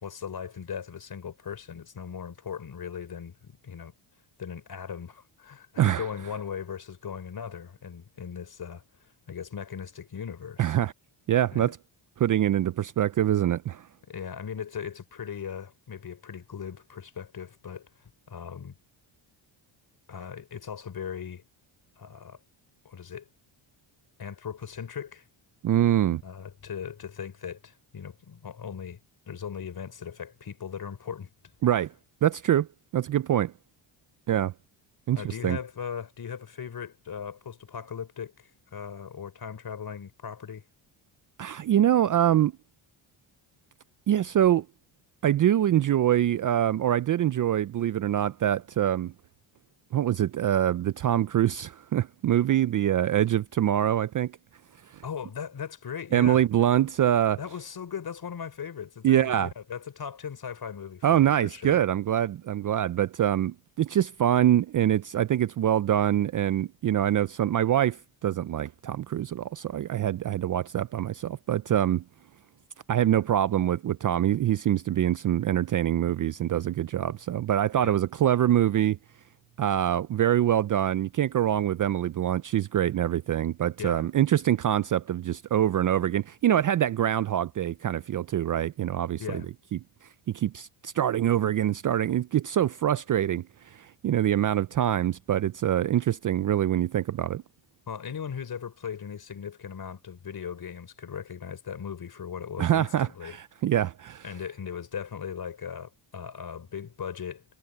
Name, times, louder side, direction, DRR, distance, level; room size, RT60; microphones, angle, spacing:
voice 1, 0.0-3.9 4.4-8.8 9.3-10.8 11.5-11.7 14.1-17.9 18.3-18.8 20.1-21.4 22.0-22.4 22.8-23.3 24.2-25.3 26.2-29.0 29.3-31.3 35.1-40.6 55.0-56.5 57.4-61.8 77.8-78.0 83.8-84.1 89.2-89.5 97.9-103.4 104.2-107.4, left 7 dB, 45° left, 3.8 m, -38 dB
voice 2, 10.6-10.9 11.3-11.8 12.2-13.9 25.6-26.2 31.6-31.9 32.2-32.7 32.9-33.5 34.3-34.5 35.1-35.6 41.4-42.5 44.1-44.6 45.2-49.1 49.9-54.3 54.9-55.0 56.1-57.4 59.0-59.5 61.0-72.0 72.9-79.0 79.6-89.4 89.7-89.8 90.3-97.4 102.6-104.2, right 11 dB, 45° right, 0.4 m, -24 dB
cardioid pair, 110°, 49 cm